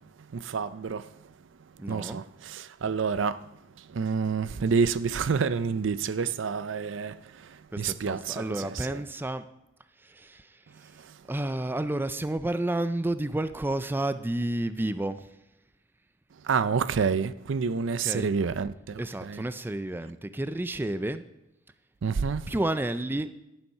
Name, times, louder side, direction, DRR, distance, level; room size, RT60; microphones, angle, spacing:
voice 1, 0.3-1.1 1.9-3.4 3.9-7.2 7.8-9.0 16.4-19.4 22.0-22.5, right 5 dB, 75° right, 0.5 m, -28 dB
voice 2, 1.8-2.2 7.7-9.4 10.0-11.0 11.3-15.4 18.0-18.3 19.0-21.2 22.5-23.3, right 1 dB, 10° right, 0.4 m, -31 dB
11.0 x 7.1 x 5.5 m
head